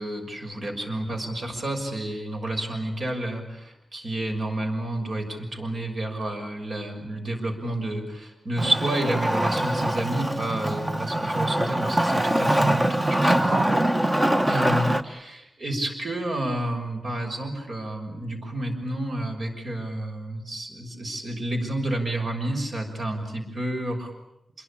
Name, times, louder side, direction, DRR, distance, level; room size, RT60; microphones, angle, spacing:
voice 1, 0.0-13.6 14.4-24.1, right 1 dB, 55° right, 3 dB, 6.2 m, -30 dB
Wood, 8.6-15.0, right 1 dB, 15° right, 1.1 m, -23 dB
27.0 x 22.5 x 8.7 m, 0.88 s
wide cardioid pair, 120°, 0 cm